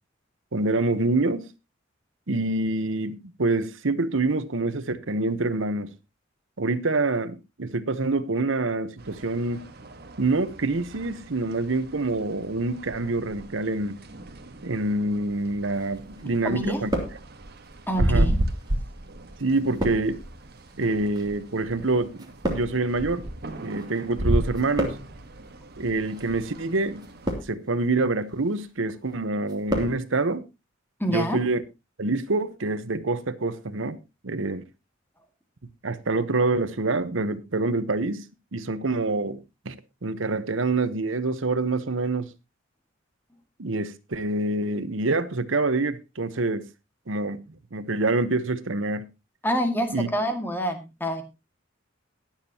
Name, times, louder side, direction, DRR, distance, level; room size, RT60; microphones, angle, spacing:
voice 1, 0.5-1.5 2.3-5.9 6.6-9.7 10.2-14.0 14.6-16.9 18.0-18.3 19.4-20.2 20.8-23.2 23.6-25.0 25.8-27.0 27.3-30.5 31.1-31.6 32.0-34.0 34.2-34.6 35.8-38.2 38.5-39.4 39.6-39.7 40.0-42.3 43.6-46.7 47.1-47.4 47.7-49.1 49.9-50.1, right 2 dB, 80° right, 1.0 m, -26 dB
sound 1, 9.0-27.3, right 1 dB, 55° right, 1.4 m, -33 dB
sound 2, 15.8-16.3 16.6-17.7 18.4-24.0 24.3-25.3 26.0-26.3 27.0-27.8 28.2-28.7 29.0-30.0 30.2-30.3, equal, 20° right, 2.9 m, -33 dB
voice 2, 16.4-16.8 17.9-18.4 31.0-31.4 49.4-51.2, equal, 10° left, 2.0 m, -27 dB
21.5 x 7.4 x 2.9 m
head